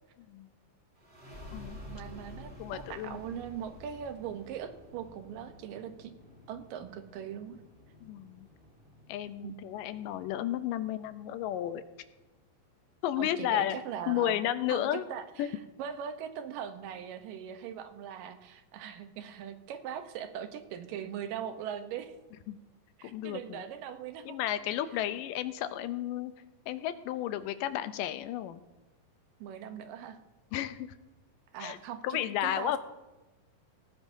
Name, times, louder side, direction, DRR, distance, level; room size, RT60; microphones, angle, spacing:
sound 1, 1.0-12.2, left 1 dB, 20° right, 3.1 m, -51 dB
voice 1, 1.9-6.1 6.5-7.6 9.4-9.6 13.2-14.4 14.7-22.1 23.0-24.4 29.4-30.2 31.5-32.8, right 9 dB, 85° right, 8 dB, 2.6 m, -40 dB
voice 2, 2.6-3.3 8.0-8.5 9.1-11.8 13.0-13.8 14.1-15.1 15.4-15.5 22.5-22.6 23.0-23.6 24.3-26.3 26.7-28.6 30.5-30.9 31.6-31.8 32.0-32.8, left 12 dB, 85° left, 11 dB, 2.3 m, -33 dB
18.0 x 15.0 x 2.7 m, 1.1 s
omnidirectional pair, 3.9 m